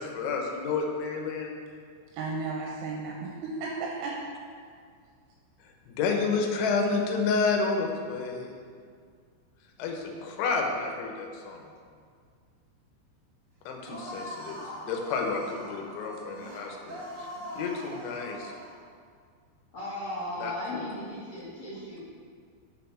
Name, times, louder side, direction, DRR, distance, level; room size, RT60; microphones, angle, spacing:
voice 1, 0.0-1.5 5.6-8.7 9.8-11.7 13.7-17.3 17.6-18.5 20.4-20.9, left 4 dB, 75° left, 2 dB, 3.1 m, -30 dB
voice 2, 2.1-4.3, right 3 dB, 75° right, -2 dB, 3.0 m, -34 dB
sound 1, 13.9-18.8, equal, 45° right, 1.4 m, -42 dB
voice 3, 19.7-22.0, left 1 dB, 60° left, -10 dB, 1.7 m, -36 dB
6.9 x 6.7 x 5.7 m, 2.1 s
omnidirectional pair, 5.7 m